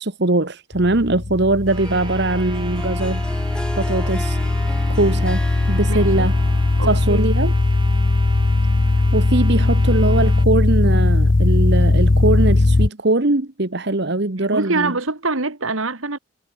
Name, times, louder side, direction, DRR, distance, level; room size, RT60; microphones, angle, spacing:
voice 1, 0.0-3.2 3.8-4.4 4.9-5.4 5.7-6.3 6.9-7.5 9.1-14.9, right 2 dB, 50° right, 1.3 m, -21 dB
sound 1, 0.7-12.9, left 2 dB, 40° left, 0.7 m, -19 dB
sound 2, 1.6-10.5, right 3 dB, 20° right, 3.2 m, -38 dB
Harp, 1.7-7.5, equal, 5° left, 3.3 m, -36 dB
voice 2, 5.9-6.3 6.8-7.2 14.4-16.2, right 3 dB, 75° right, 2.5 m, -25 dB
head